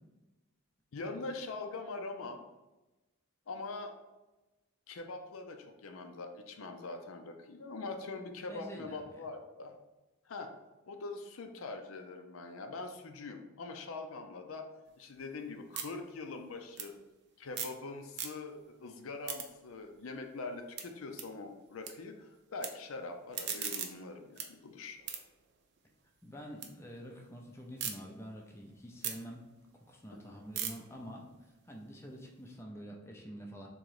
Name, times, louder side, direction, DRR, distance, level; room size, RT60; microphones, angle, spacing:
voice 1, 0.9-2.4 3.5-3.9 4.9-9.8 10.3-10.5 10.9-14.7 15.0-16.9 17.4-25.0 30.1-30.2, left 3 dB, 75° left, 5 dB, 0.5 m, -43 dB
voice 2, 8.4-9.2 26.2-29.5 29.9-33.7, equal, 10° left, 0 dB, 0.4 m, -47 dB
sound 1, 14.9-17.8 18.1-18.7 19.0-21.9 22.2-22.7 23.1-26.7 27.1-27.9 28.4-32.5, right 8 dB, 50° right, 0.5 m, -43 dB
3.8 x 3.0 x 4.7 m, 1.1 s
head